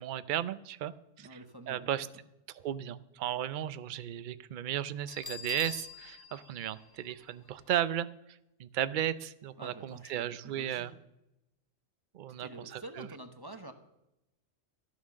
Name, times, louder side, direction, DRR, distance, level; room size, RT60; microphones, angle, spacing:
voice 1, 0.0-1.4 1.7-2.1 2.5-10.9 12.1-13.1, right 11 dB, 55° right, 15 dB, 0.6 m, -35 dB
voice 2, 1.2-1.9 9.6-11.0 12.4-13.7, right 2 dB, 20° right, 7 dB, 0.8 m, -47 dB
Bell, 5.1-7.8, left 5 dB, 20° left, 0.7 m, -45 dB
13.0 x 9.5 x 6.3 m, 0.88 s
omnidirectional pair, 1.3 m